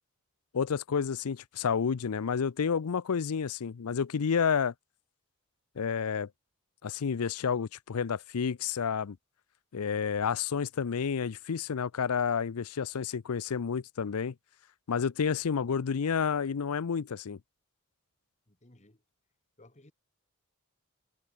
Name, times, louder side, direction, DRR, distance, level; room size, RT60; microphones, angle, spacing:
voice 1, 0.5-4.7 5.8-6.3 6.8-9.2 9.7-14.3 14.9-17.4, left 6 dB, 90° left, 0.5 m, -30 dB
voice 2, 18.5-19.0 19.6-19.9, left 1 dB, 30° left, 2.4 m, -58 dB
head